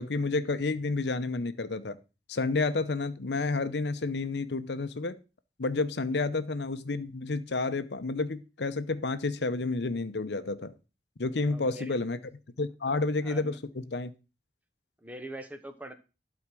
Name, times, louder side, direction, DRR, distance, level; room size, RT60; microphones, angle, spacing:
voice 1, 0.0-2.0 2.3-5.2 5.6-10.7 11.2-12.2 12.6-14.1, left 3 dB, 70° left, 0.8 m, -30 dB
voice 2, 11.4-12.0 13.2-13.6 15.0-15.9, right 1 dB, 10° right, 0.9 m, -43 dB
12.0 x 4.3 x 6.1 m
head